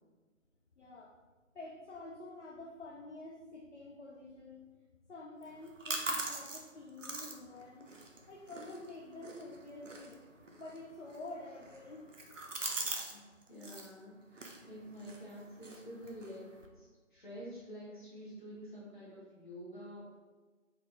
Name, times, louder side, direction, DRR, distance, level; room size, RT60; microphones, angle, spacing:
voice 1, 0.8-1.1 1.5-4.6 5.1-7.9 8.3-10.2 10.6-12.0, left 2 dB, 65° left, -3 dB, 0.6 m, -48 dB
sound 1, 5.4-13.2 13.4-13.9 14.3-16.7, right 2 dB, 70° right, 0.7 m, -43 dB
voice 2, 13.1-20.2, equal, 40° left, -8 dB, 1.4 m, -48 dB
4.0 x 2.5 x 3.4 m, 1.3 s
figure-of-eight pair, 170°, 39 cm